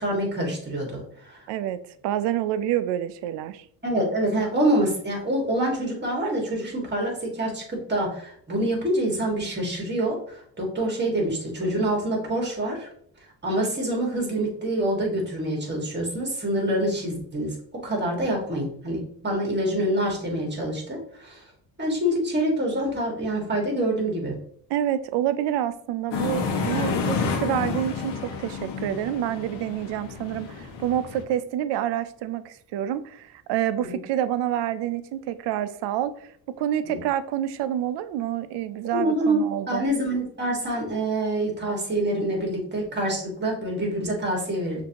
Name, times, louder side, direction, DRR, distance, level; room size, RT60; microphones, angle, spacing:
voice 1, 0.0-1.4 3.8-12.9 13.4-21.4 21.8-24.3 33.8-34.0 36.9-37.0 38.9-39.4 39.7-44.8, right 1 dB, 25° right, 0 dB, 1.7 m, -26 dB
voice 2, 1.5-3.6 24.7-28.1 28.4-36.3 36.6-39.8, right 11 dB, 80° right, 13 dB, 0.5 m, -28 dB
sound 1, 26.1-31.2, left 5 dB, 90° left, 0.9 m, -29 dB
6.1 x 2.7 x 2.8 m, 0.65 s
cardioid pair, 105°, 41 cm